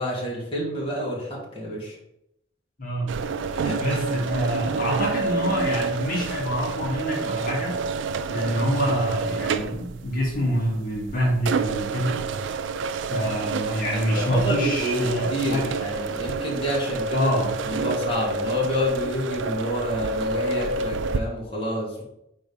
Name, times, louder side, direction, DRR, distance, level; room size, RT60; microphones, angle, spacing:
voice 1, 0.0-2.0 3.5-4.0 13.9-17.3 17.7-22.0, equal, 30° left, -5 dB, 1.7 m, -28 dB
voice 2, 2.8-3.1 3.7-7.8 8.3-12.2 13.1-15.7 17.1-17.5, equal, 50° left, -3 dB, 1.6 m, -26 dB
sound 1, 3.1-21.2, right 4 dB, 75° right, 0.4 m, -29 dB
4.8 x 3.9 x 5.4 m, 0.80 s
head